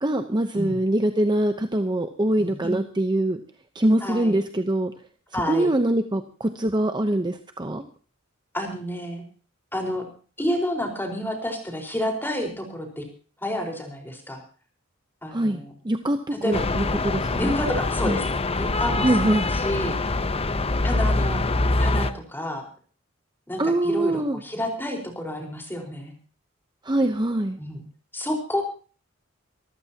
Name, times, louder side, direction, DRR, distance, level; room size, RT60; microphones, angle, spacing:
voice 1, 0.0-3.4 3.7-4.9 5.5-7.8 15.3-16.2 16.4-17.5 18.1-18.2 19.0-19.5 23.6-24.4 26.8-27.6, right 1 dB, 20° right, 7 dB, 0.8 m, -23 dB
voice 2, 2.4-2.8 4.0-4.4 5.3-5.7 8.5-9.2 9.7-10.0 10.4-13.0 13.4-14.4 15.2-15.7 16.4-16.6 17.4-18.2 18.5-20.0 20.8-21.4 21.8-22.6 23.5-26.1 27.6-27.8 28.1-28.6, left 1 dB, 10° left, 2 dB, 4.5 m, -29 dB
sound 1, 16.5-22.1, left 2 dB, 30° left, 0.8 m, -24 dB
25.5 x 14.0 x 2.9 m, 0.38 s
head